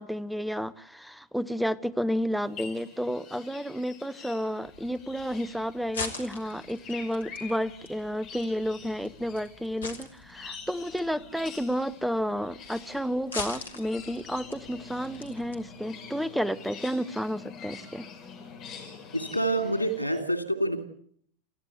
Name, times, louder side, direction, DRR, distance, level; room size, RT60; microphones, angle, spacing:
voice 1, 0.0-18.1, equal, ahead, 17 dB, 0.9 m, -31 dB
sound 1, 2.4-20.2, left 6 dB, 35° left, 5.5 m, -46 dB
sound 2, 4.6-15.7, left 4 dB, 70° left, 3.3 m, -43 dB
voice 2, 19.1-20.8, right 1 dB, 90° right, 8 dB, 3.0 m, -27 dB
27.5 x 15.0 x 8.3 m, 0.64 s
figure-of-eight pair, 90°, 0 cm